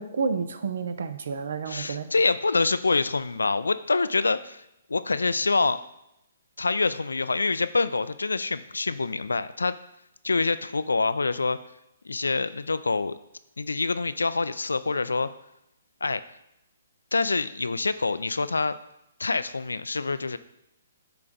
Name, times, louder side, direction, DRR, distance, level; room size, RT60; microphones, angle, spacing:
voice 1, 0.0-2.1, right 5 dB, 65° right, 10 dB, 0.6 m, -30 dB
voice 2, 1.7-4.6 4.9-5.8 6.6-9.7 10.2-11.6 12.0-13.2 13.6-15.3 16.0-16.2 17.1-18.8 19.2-20.4, left 3 dB, 80° left, 14 dB, 0.3 m, -26 dB
7.9 x 3.3 x 3.8 m, 0.84 s
figure-of-eight pair, 130°, 0 cm